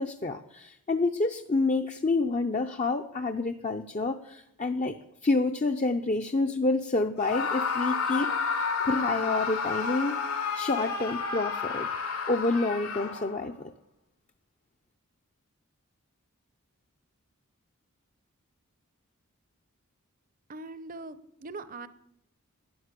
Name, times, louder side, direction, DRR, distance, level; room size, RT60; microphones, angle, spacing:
voice 1, 0.0-5.0 5.2-10.2 10.5-11.9 12.3-13.7, left 3 dB, 30° left, 5 dB, 0.6 m, -28 dB
Screaming, 7.2-13.4, left 5 dB, 85° left, 2.7 m, -31 dB
voice 2, 20.5-21.9, right 3 dB, 40° right, 14 dB, 0.7 m, -41 dB
12.5 x 10.5 x 8.1 m, 0.79 s
head